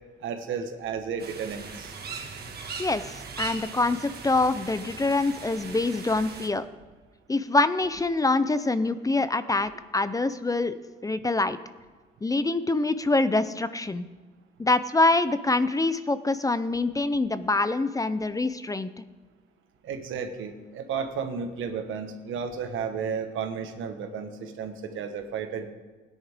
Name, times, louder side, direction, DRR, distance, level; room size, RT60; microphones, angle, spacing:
voice 1, 0.2-1.9 19.8-25.7, right 6 dB, 80° right, 6 dB, 1.4 m, -33 dB
sound 1, 1.2-6.5, right 5 dB, 50° right, 1.9 m, -39 dB
voice 2, 3.4-6.7 7.3-10.8 11.0-11.6 12.2-14.0 14.6-18.9, left 2 dB, 15° left, 13 dB, 0.6 m, -25 dB
17.0 x 10.0 x 3.6 m, 1.3 s
cardioid pair, 90°, 20 cm